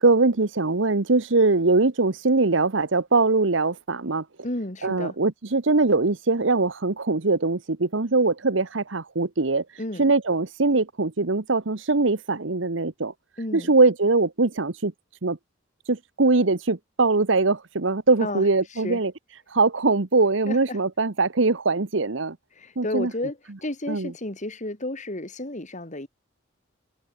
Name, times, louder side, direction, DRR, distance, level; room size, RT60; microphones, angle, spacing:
voice 1, 0.0-4.2 4.8-9.6 10.0-13.1 13.5-14.9 15.2-15.4 15.9-19.1 19.5-22.4 22.8-23.1 23.9-24.1, right 3 dB, 75° right, 1.2 m, -22 dB
voice 2, 4.4-5.2 9.8-10.1 13.4-13.7 18.2-19.0 20.5-20.8 22.5-26.1, left 1 dB, 40° left, 3.0 m, -32 dB
head